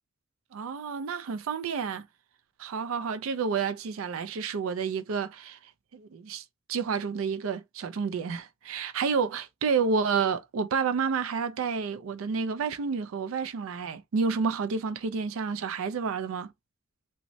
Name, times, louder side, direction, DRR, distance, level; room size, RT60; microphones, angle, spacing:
voice 1, 0.5-2.0 2.6-5.6 5.9-6.4 6.7-16.5, right 5 dB, 80° right, 0.4 m, -30 dB
3.0 x 2.1 x 2.6 m
head